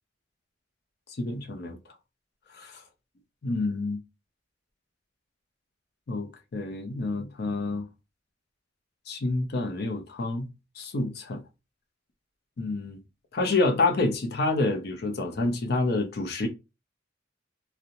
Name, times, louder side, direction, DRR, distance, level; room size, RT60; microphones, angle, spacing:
voice 1, 1.2-1.8 2.5-2.8 3.4-4.0 6.1-7.8 9.1-10.5 10.8-11.4 12.6-13.0 13.3-16.5, left 2 dB, 55° left, 0.5 m, -28 dB
2.5 x 2.0 x 2.8 m
head